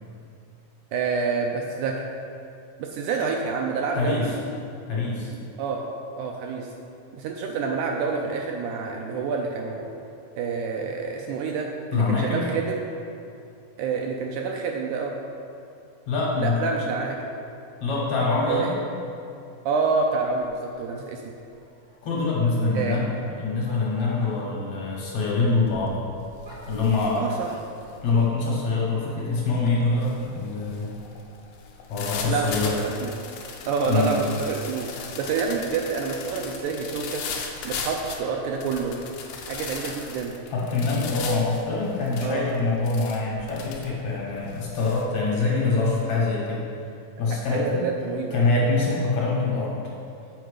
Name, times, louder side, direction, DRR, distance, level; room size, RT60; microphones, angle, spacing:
voice 1, 0.9-2.0 2.8-4.3 5.3-5.8 6.2-6.7 7.1-9.9 10.4-12.8 13.8-15.1 16.4-17.3 18.5-18.7 19.7-21.3 22.8-23.0 27.2-27.6 32.3-33.1 33.7-34.9 35.2-37.2 37.6-38.9 39.4-40.4 42.2-42.5 47.5-48.4, right 5 dB, 80° right, 1 dB, 1.9 m, -28 dB
voice 2, 3.9-4.3 4.9-5.3 11.9-12.4 16.1-16.9 17.8-18.7 22.0-26.0 26.7-27.3 28.0-30.9 31.9-32.7 33.9-34.1 40.5-46.7 47.2-47.8 48.3-49.8, left 3 dB, 65° left, -5 dB, 2.1 m, -24 dB
sound 1, 20.6-27.0, equal, 40° right, 0.8 m, -47 dB
sound 2, 25.4-25.7 26.1-45.0, left 5 dB, 80° left, 1.5 m, -38 dB
8.0 x 4.4 x 4.9 m, 2.6 s
omnidirectional pair, 3.8 m